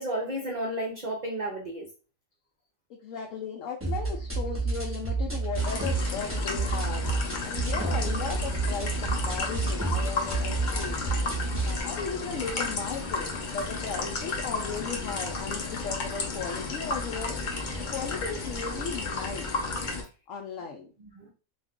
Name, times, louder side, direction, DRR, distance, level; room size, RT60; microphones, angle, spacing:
voice 1, 0.0-1.9 7.7-8.2 21.0-21.3, right 1 dB, 55° right, -1 dB, 0.5 m, -33 dB
voice 2, 2.9-7.1 7.4-11.0 11.6-17.6 17.9-19.5 20.3-20.9, left 6 dB, 70° left, 1 dB, 0.9 m, -36 dB
sound 1, 3.8-11.8, right 3 dB, 15° right, 0.7 m, -30 dB
sound 2, 5.6-20.0, left 3 dB, 50° left, 0.6 m, -33 dB
2.5 x 2.4 x 3.5 m, 0.34 s
omnidirectional pair, 1.5 m